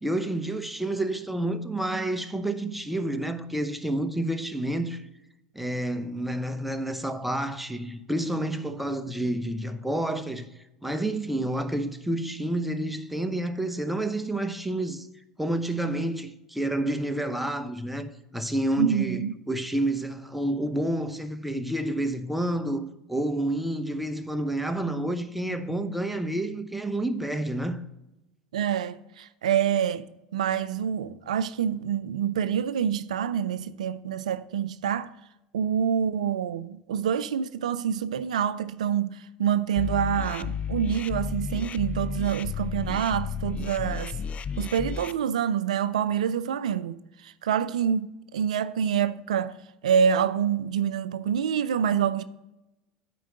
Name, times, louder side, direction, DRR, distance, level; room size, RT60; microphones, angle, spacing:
voice 1, 0.0-5.1 5.5-10.5 10.8-15.1 15.4-27.8, right 1 dB, 5° right, 0.9 m, -29 dB
voice 2, 18.8-19.3 28.5-30.0 30.3-35.1 35.5-44.2 44.6-49.6 49.8-52.2, right 8 dB, 85° right, 0.4 m, -26 dB
sound 1, 39.8-45.1, left 6 dB, 35° left, 0.4 m, -32 dB
9.2 x 4.6 x 6.4 m
hypercardioid pair, 80°, 4 cm